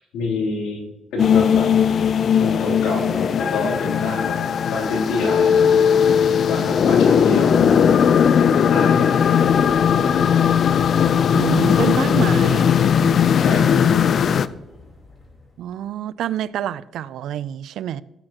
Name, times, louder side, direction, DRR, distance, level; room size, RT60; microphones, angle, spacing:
voice 1, 0.1-1.7 2.4-4.4 4.6-5.9 6.4-9.3 11.5-11.9 12.2-12.4 13.4-13.8, left 3 dB, 90° left, 3.3 m, -27 dB
sound 1, 1.2-14.5, left 7 dB, 55° left, 0.4 m, -17 dB
sound 2, 9.4-15.8, left 1 dB, 40° left, 4.4 m, -41 dB
voice 2, 11.3-12.8 15.6-18.0, right 11 dB, 80° right, 0.4 m, -27 dB
16.5 x 8.8 x 3.0 m
cardioid pair, 90°, 0 cm